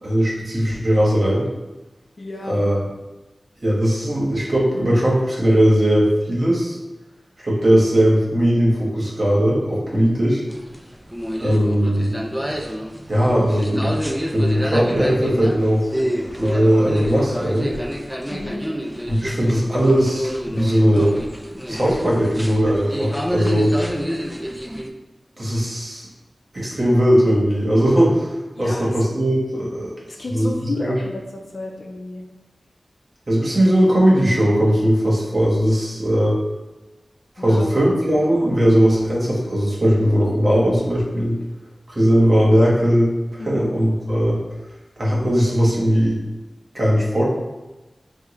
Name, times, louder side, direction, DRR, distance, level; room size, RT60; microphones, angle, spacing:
voice 1, 0.0-1.5 2.5-2.8 3.6-6.8 7.4-10.4 11.4-12.2 13.1-13.9 14.3-15.8 16.4-17.7 19.1-21.2 21.7-23.7 25.4-26.1 26.5-29.9 30.3-31.0 33.3-36.4 37.4-41.4 41.9-44.4 45.0-46.2 46.7-47.2, equal, 45° right, -5 dB, 1.1 m, -18 dB
voice 2, 2.2-2.7 18.3-18.6 20.6-20.7 28.5-28.9 30.1-31.2 31.5-32.3 37.4-37.7 43.4-43.8, left 2 dB, 60° left, 1 dB, 0.5 m, -31 dB
sound 1, 10.5-24.9, equal, ahead, 0.3 m, -28 dB
3.6 x 2.2 x 3.1 m, 1.1 s
wide cardioid pair, 65°, 0 cm